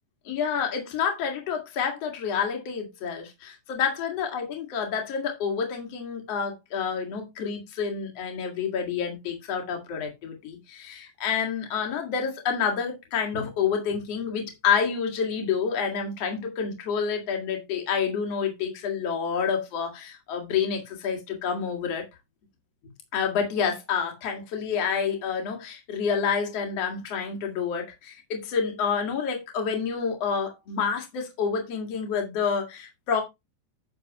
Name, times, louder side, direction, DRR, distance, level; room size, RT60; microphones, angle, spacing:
voice 1, 0.3-22.1 23.1-33.2, left 6 dB, 55° left, 2.9 m, -28 dB
10.5 x 6.7 x 3.0 m
omnidirectional pair, 3.6 m